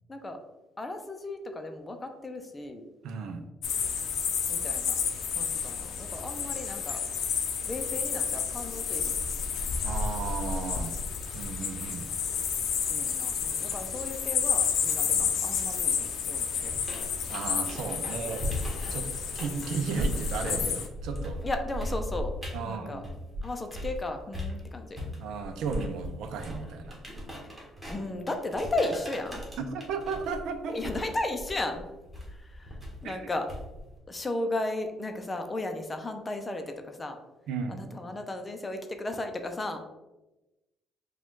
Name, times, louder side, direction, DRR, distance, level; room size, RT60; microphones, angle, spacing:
voice 1, 0.8-2.8 4.5-4.9 5.3-7.0 7.7-9.1 12.9-16.8 18.8-19.0 21.4-22.3 22.6-23.0 23.4-25.0 27.9-29.4 30.7-31.9 32.3-33.5 34.1-37.2 37.7-39.8, left 2 dB, 20° left, 5 dB, 0.5 m, -35 dB
voice 2, 3.0-3.4 9.8-10.9 11.3-12.1 15.0-15.3 17.3-18.5 18.9-19.1 19.3-21.4 22.5-23.1 25.2-27.0 29.6-30.8 33.0-33.2 37.5-37.8, right 5 dB, 75° right, 6 dB, 0.5 m, -34 dB
sound 1, 3.6-20.9, left 7 dB, 65° left, 0.6 m, -31 dB
sound 2, 16.6-24.0 24.3-33.9, equal, 5° right, 1.3 m, -37 dB
4.9 x 2.3 x 3.7 m, 1.0 s
cardioid pair, 135°, 0 cm